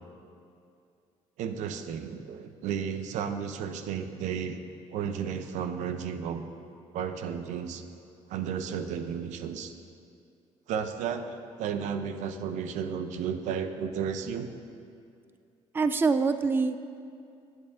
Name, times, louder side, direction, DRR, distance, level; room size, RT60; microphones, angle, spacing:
voice 1, 1.4-4.6 4.9-6.4 6.9-7.8 8.3-9.7 10.7-14.5, right 7 dB, 75° right, 8 dB, 0.8 m, -33 dB
voice 2, 15.7-16.8, right 4 dB, 15° right, 11 dB, 0.4 m, -24 dB
17.0 x 9.4 x 3.6 m, 2.4 s
cardioid pair, 105°, 12 cm